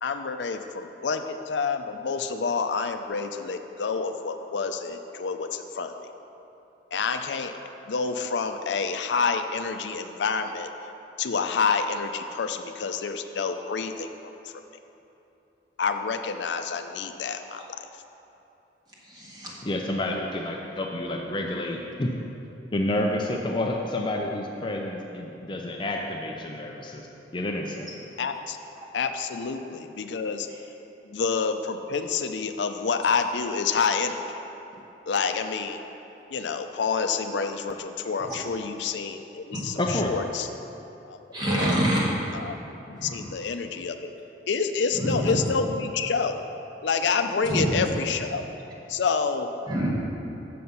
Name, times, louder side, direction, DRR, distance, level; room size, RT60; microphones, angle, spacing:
voice 1, 0.0-5.9 6.9-7.5 7.8-10.7 11.2-14.5 15.8-17.9 28.2-28.6 28.9-30.5 31.0-34.2 35.1-35.8 36.3-40.5 41.0-41.2 41.6-41.8 42.3-44.1 44.5-46.4 46.8-48.4 48.9-49.5, left 5 dB, 85° left, 7 dB, 0.5 m, -28 dB
voice 2, 19.0-19.5 38.3-38.4 39.5-39.6 41.3-42.0 43.0-43.2 44.9-45.3 47.5-47.7 49.7-50.0, right 1 dB, 25° right, -5 dB, 1.6 m, -26 dB
voice 3, 19.6-22.1 22.7-27.1 27.3-27.9 39.8-40.1, left 1 dB, 25° left, 0 dB, 0.5 m, -29 dB
7.8 x 6.7 x 5.5 m, 2.9 s
head